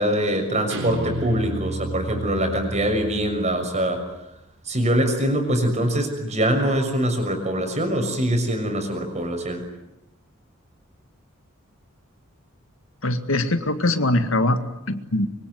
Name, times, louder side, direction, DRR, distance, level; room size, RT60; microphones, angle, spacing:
voice 1, 0.0-4.0 4.7-9.6, right 1 dB, 35° right, 6 dB, 6.5 m, -23 dB
Guitar, 0.7-3.9, right 1 dB, 80° right, 5.1 m, -32 dB
voice 2, 13.0-14.6 14.9-15.3, left 1 dB, 70° left, 8 dB, 2.1 m, -22 dB
25.5 x 24.5 x 9.5 m, 0.90 s
head